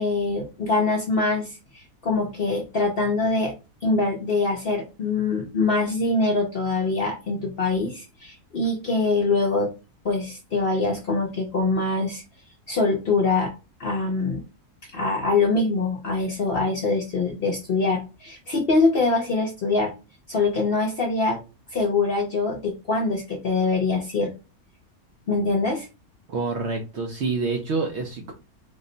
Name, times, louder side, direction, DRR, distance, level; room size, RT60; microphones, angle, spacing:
voice 1, 0.0-3.5 3.8-9.7 10.0-12.2 12.7-13.5 13.8-14.4 14.9-19.9 20.3-21.4 21.7-24.3 25.3-25.9, left 3 dB, 55° left, 1 dB, 0.6 m, -24 dB
voice 2, 26.3-28.3, right 3 dB, 65° right, 3 dB, 0.7 m, -27 dB
3.5 x 2.1 x 3.8 m, 0.29 s
omnidirectional pair, 1.6 m